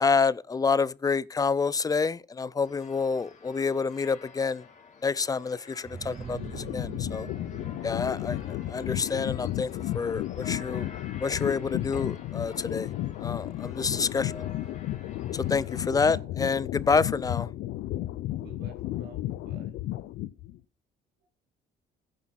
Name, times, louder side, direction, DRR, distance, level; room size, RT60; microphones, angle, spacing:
voice 1, 0.0-4.6 5.0-7.3 7.8-9.7 9.9-10.9 11.2-12.9 13.2-14.4 15.3-17.5, left 5 dB, 20° left, 0.5 m, -28 dB
sound 1, 2.6-15.9, left 4 dB, 45° left, 3.6 m, -50 dB
sound 2, 5.8-11.4, right 5 dB, 35° right, 0.9 m, -45 dB
sound 3, 6.3-20.6, left 14 dB, 80° left, 0.7 m, -33 dB
voice 2, 16.0-16.4 18.4-19.8 21.2-21.3, right 3 dB, 80° right, 4.2 m, -50 dB
14.5 x 10.0 x 4.2 m
cardioid pair, 110°, 17 cm